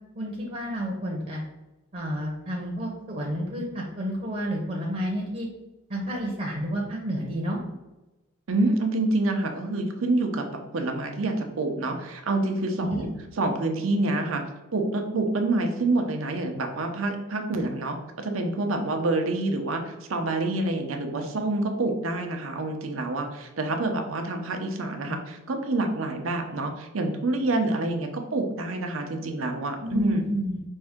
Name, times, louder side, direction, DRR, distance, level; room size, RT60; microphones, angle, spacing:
voice 1, 0.1-1.4 1.9-5.5 5.9-7.6 12.8-13.0 29.8-30.6, equal, 35° right, -1 dB, 0.8 m, -30 dB
voice 2, 8.5-13.1 13.4-14.4 14.7-30.2, right 2 dB, 80° right, 4 dB, 0.7 m, -27 dB
5.4 x 2.6 x 3.6 m, 1.0 s
head